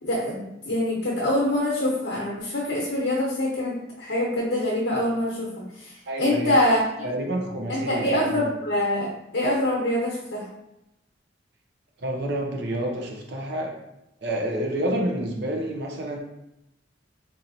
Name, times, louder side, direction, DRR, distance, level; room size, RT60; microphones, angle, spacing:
voice 1, 0.0-5.5 5.7-7.1 7.7-10.4, left 1 dB, 70° left, -4 dB, 0.9 m, -25 dB
voice 2, 6.1-6.6 7.0-8.4 12.0-13.7 14.2-16.2, right 1 dB, 65° right, 0 dB, 0.8 m, -28 dB
4.5 x 2.8 x 2.7 m, 0.88 s
head